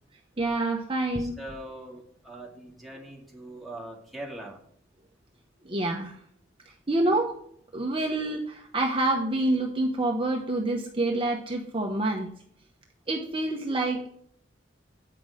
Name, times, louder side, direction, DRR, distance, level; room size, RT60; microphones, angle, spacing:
voice 1, 0.4-1.4 5.6-6.2 6.7-7.4 7.7-12.3 13.1-14.1, right 2 dB, 30° right, 1 dB, 0.9 m, -27 dB
voice 2, 1.2-4.6, right 1 dB, ahead, -2 dB, 2.0 m, -42 dB
8.6 x 6.0 x 5.0 m, 0.64 s
head